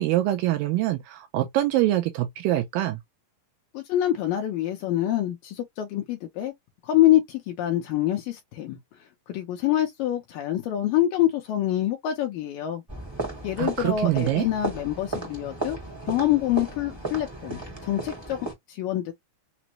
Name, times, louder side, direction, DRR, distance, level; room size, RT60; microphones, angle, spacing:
voice 1, 0.0-3.0 13.6-14.5, right 14 dB, 80° right, 2.1 m, -24 dB
voice 2, 3.7-6.5 6.8-8.8 9.3-12.8 13.4-15.8 16.1-18.4 18.7-19.1, left 12 dB, 80° left, 2.1 m, -25 dB
sound 1, 12.9-18.5, right 2 dB, 15° right, 0.8 m, -35 dB
6.0 x 2.1 x 2.8 m
omnidirectional pair, 4.5 m